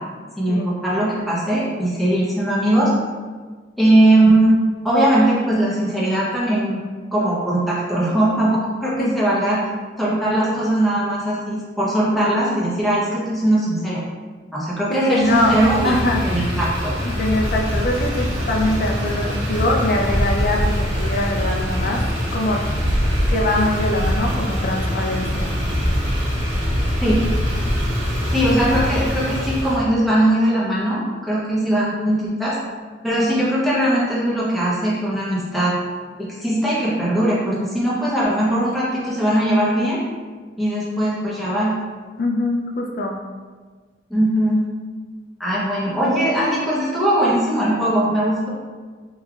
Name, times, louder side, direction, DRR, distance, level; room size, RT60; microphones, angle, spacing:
voice 1, 0.4-2.9 3.8-4.5 4.8-6.8 7.1-9.6 10.0-14.0 14.5-15.9 16.2-16.9 27.0-27.2 28.3-32.6 33.0-35.7 36.2-40.0 40.6-41.7 44.1-44.6 45.4-48.5, right 1 dB, ahead, -8 dB, 1.0 m, -19 dB
voice 2, 14.9-15.6 15.8-16.2 17.0-22.0 22.3-22.6 23.3-25.5 42.2-43.2, left 2 dB, 50° left, 0 dB, 0.4 m, -22 dB
Motor vehicle (road), 15.2-29.8, equal, 70° right, 1.3 m, -23 dB
5.3 x 3.1 x 2.4 m, 1.5 s
head